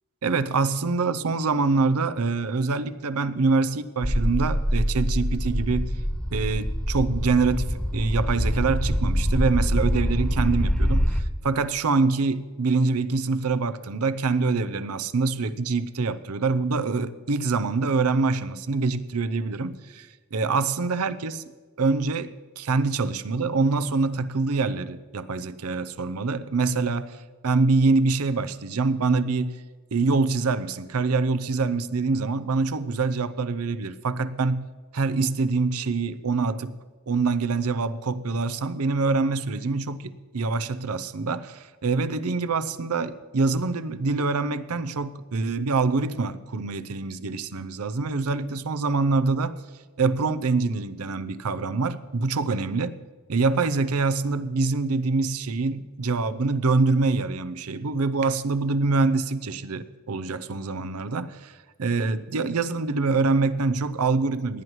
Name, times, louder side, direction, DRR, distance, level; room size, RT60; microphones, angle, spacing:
voice 1, 0.2-5.9 6.3-21.4 21.8-27.2 27.4-29.5 29.9-34.6 34.9-36.7 37.1-49.6 50.0-52.9 53.3-61.5 61.8-64.6, right 3 dB, 80° right, 14 dB, 0.6 m, -25 dB
sound 1, 4.0-11.2, equal, 5° left, 0.6 m, -25 dB
18.5 x 11.0 x 3.1 m, 1.4 s
head